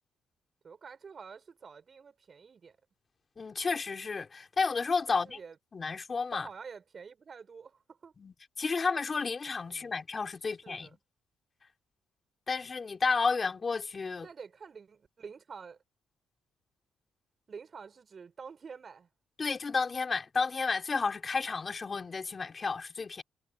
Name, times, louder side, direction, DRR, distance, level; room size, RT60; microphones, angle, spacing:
voice 1, 0.6-2.8 5.1-5.6 6.3-8.1 9.7-9.9 10.6-11.0 14.2-15.8 17.5-19.1, right 5 dB, 40° right, 6.9 m, -48 dB
voice 2, 3.4-5.4 5.7-6.5 8.2-10.9 12.5-14.3 19.4-23.2, left 4 dB, 35° left, 3.9 m, -32 dB
cardioid pair, 90°, 0 cm